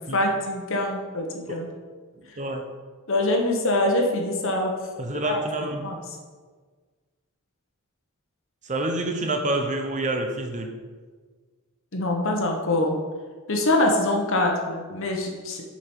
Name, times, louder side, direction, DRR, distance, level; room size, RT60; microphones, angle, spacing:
voice 1, 0.0-1.7 3.1-4.7 5.2-5.4 5.8-6.0 11.9-12.9 13.5-15.6, left 1 dB, 65° left, 1 dB, 1.2 m, -24 dB
voice 2, 5.0-5.8 8.6-10.7, right 2 dB, 35° right, 3 dB, 0.8 m, -27 dB
7.1 x 5.1 x 4.5 m, 1.5 s
head